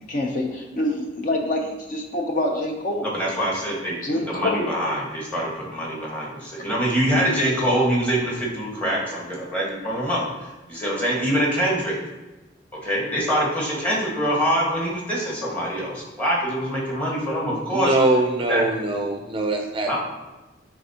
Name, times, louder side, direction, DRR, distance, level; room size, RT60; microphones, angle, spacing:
voice 1, 0.1-3.1 4.0-4.7, left 1 dB, 45° left, 1 dB, 0.6 m, -26 dB
voice 2, 3.0-3.9 4.3-12.0 12.8-17.9 18.5-18.6 19.9-20.0, equal, 10° left, -5 dB, 1.4 m, -24 dB
voice 3, 17.7-20.0, right 2 dB, 30° right, 3 dB, 0.4 m, -22 dB
9.4 x 3.5 x 2.8 m, 1.1 s
head